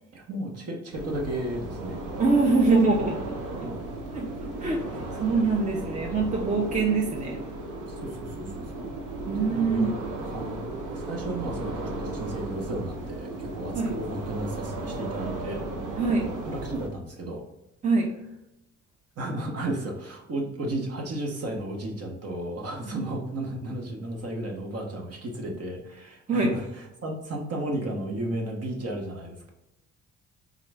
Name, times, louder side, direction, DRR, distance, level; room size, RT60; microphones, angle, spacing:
voice 1, 0.1-2.0 3.6-3.7 6.2-6.3 7.9-8.9 9.3-10.0 10.2-10.6 10.9-15.6 16.4-17.4 19.2-29.5, right 1 dB, 50° right, 1 dB, 1.1 m, -34 dB
sound 1, 0.9-16.9, right 2 dB, 85° right, 0.7 m, -35 dB
voice 2, 2.2-3.2 3.6-3.7 4.1-4.3 4.6-7.4 9.3-9.9 13.7-13.9 16.0-16.3 17.8-18.1 22.8-23.1 26.3-26.5, right 3 dB, 25° right, 0 dB, 0.7 m, -24 dB
3.7 x 2.9 x 3.3 m, 0.92 s
cardioid pair, 90°, 30 cm